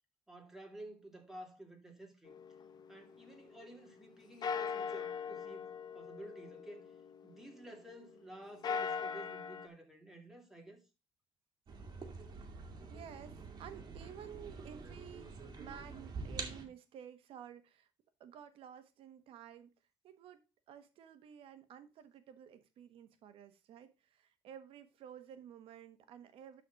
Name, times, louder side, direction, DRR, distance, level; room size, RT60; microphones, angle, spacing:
voice 1, 0.3-2.3 2.9-6.8 7.2-10.8, right 1 dB, 5° right, 2.4 m, -52 dB
sound 1, 2.3-4.0 4.4-8.0 8.4-9.7, left 6 dB, 45° left, 0.7 m, -41 dB
sound 2, 11.7-16.7, right 4 dB, 45° right, 1.9 m, -46 dB
voice 2, 12.9-17.9 18.2-19.7 20.0-20.4 20.7-26.6, right 9 dB, 80° right, 1.2 m, -53 dB
12.0 x 4.2 x 4.0 m
cardioid pair, 120°, 9 cm